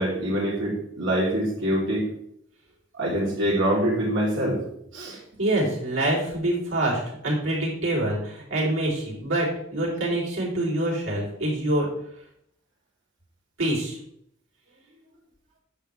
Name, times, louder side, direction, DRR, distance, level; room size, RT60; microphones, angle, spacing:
voice 1, 0.0-2.1 3.0-4.6 4.9-5.2, right 1 dB, 75° right, -4 dB, 3.9 m, -24 dB
voice 2, 5.1-11.9 13.6-14.0, right 1 dB, 90° right, -5 dB, 4.1 m, -26 dB
9.9 x 7.0 x 3.6 m, 0.74 s
head